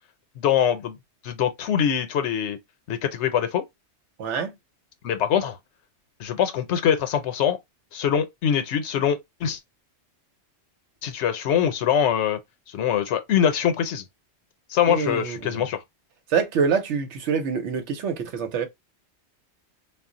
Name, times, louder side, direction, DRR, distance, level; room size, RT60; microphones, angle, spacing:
voice 1, 0.4-1.0 1.2-2.6 2.9-3.6 5.0-5.5 6.2-7.6 7.9-9.6 11.0-12.4 12.7-14.0 14.7-15.8, left 9 dB, 75° left, 0.9 m, -23 dB
voice 2, 4.2-4.5 14.9-15.7 16.3-18.7, right 6 dB, 85° right, 1.0 m, -25 dB
2.4 x 2.0 x 3.7 m
omnidirectional pair, 1.2 m